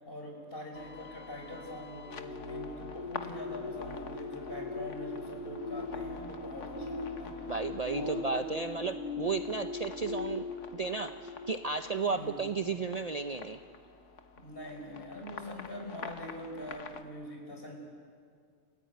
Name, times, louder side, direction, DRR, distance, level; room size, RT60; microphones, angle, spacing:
voice 1, 0.0-7.5 7.9-8.6 12.1-12.5 14.3-17.8, left 1 dB, 50° left, 1 dB, 5.1 m, -43 dB
sound 1, 0.7-17.0, left 5 dB, 75° left, 1.5 m, -47 dB
sound 2, 2.1-11.9 12.4-12.6, left 3 dB, 15° right, 4.5 m, -40 dB
voice 2, 7.5-10.4 10.7-13.6, right 4 dB, 40° right, 8 dB, 0.7 m, -33 dB
30.0 x 16.0 x 9.3 m, 2.2 s
omnidirectional pair, 1.3 m